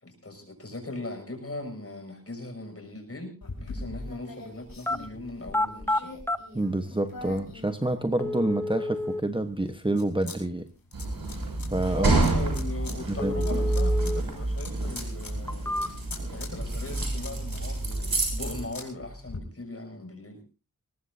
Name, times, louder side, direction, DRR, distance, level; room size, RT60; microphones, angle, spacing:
voice 1, 0.0-6.1 11.9-15.8 16.3-20.4, left 2 dB, 40° left, 4 dB, 6.6 m, -39 dB
sound 1, 3.4-8.5 9.0-10.4 10.6-11.7 12.2-13.0 13.3-19.4, left 3 dB, 70° left, 4.7 m, -43 dB
sound 2, 4.7-5.0 5.4-6.4 7.4-7.5 8.2-9.2 13.2-14.2 14.6-14.7 15.3-16.2 16.6-17.3 17.6-18.2, left 2 dB, 5° left, 0.9 m, -30 dB
voice 2, 6.5-10.7 11.7-12.2 13.1-13.4, right 1 dB, 15° right, 7 dB, 1.2 m, -28 dB
sound 3, 10.9-18.7, right 2 dB, 75° right, 6.6 m, -28 dB
21.5 x 19.5 x 2.7 m, 0.34 s
wide cardioid pair, 70°, 36 cm